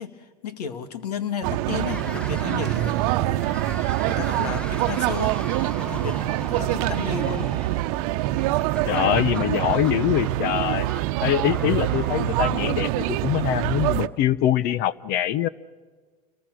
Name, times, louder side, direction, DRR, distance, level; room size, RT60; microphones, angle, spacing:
voice 1, 0.0-3.5 4.1-5.4 5.8-7.5, left 6 dB, 90° left, 10 dB, 2.2 m, -33 dB
sound 1, 1.4-14.1, right 16 dB, 65° right, 0.9 m, -25 dB
sound 2, 1.8-13.0, equal, 5° left, 1.0 m, -40 dB
voice 2, 8.9-10.9 11.2-15.5, left 12 dB, 55° left, 19 dB, 0.8 m, -23 dB
29.5 x 22.5 x 6.4 m, 1.5 s
supercardioid pair, 105°, 20 cm